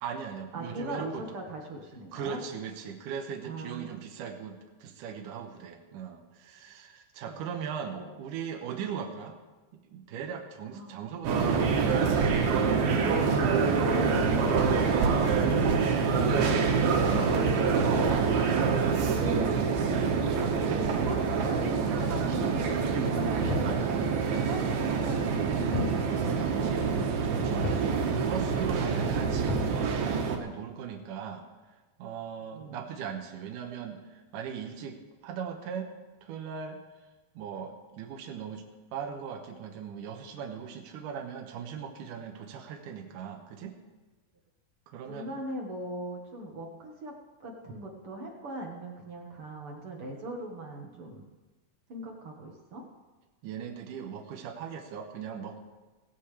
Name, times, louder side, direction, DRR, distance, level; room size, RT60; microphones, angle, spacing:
voice 1, 0.0-1.3 2.1-9.4 9.7-12.1 12.9-13.5 27.2-31.4 32.0-35.9 36.2-36.8 37.4-38.6 38.9-43.8 44.9-45.3 53.4-55.6, right 7 dB, 70° right, 3 dB, 2.5 m, -39 dB
voice 2, 0.5-2.4 3.4-3.9 7.2-7.4 7.9-8.1 10.7-11.4 13.0-15.3 17.7-19.8 20.4-27.0 32.5-32.8 45.1-47.1 47.4-51.3 51.9-52.8, right 1 dB, 50° right, 0 dB, 1.8 m, -40 dB
sound 1, 11.3-30.4, right 5 dB, 90° right, 3.4 m, -26 dB
sound 2, 23.5-23.8 25.7-26.0 26.3-26.4 27.6-27.9 29.5-29.8, left 3 dB, 75° left, 4.9 m, -32 dB
17.0 x 16.0 x 3.3 m, 1.2 s
omnidirectional pair, 4.2 m